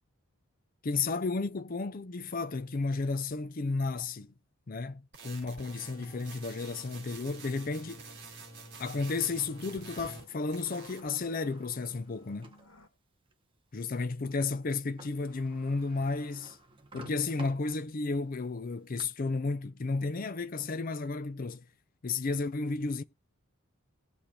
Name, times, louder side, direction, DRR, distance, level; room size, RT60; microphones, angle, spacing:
voice 1, 0.8-4.3 4.7-8.0 8.8-12.5 13.7-16.6 16.9-21.6 22.0-23.0, left 3 dB, 40° left, 0.5 m, -33 dB
sound 1, 5.1-10.3 10.5-11.1, right 3 dB, 55° right, 2.2 m, -48 dB
sound 2, 5.8-12.9, left 2 dB, 85° left, 1.9 m, -60 dB
Sliding door, 10.1-12.7 13.3-13.4 14.7-14.8 15.0-18.2 18.6-19.0, right 2 dB, 25° right, 1.0 m, -53 dB
19.5 x 6.7 x 2.8 m
head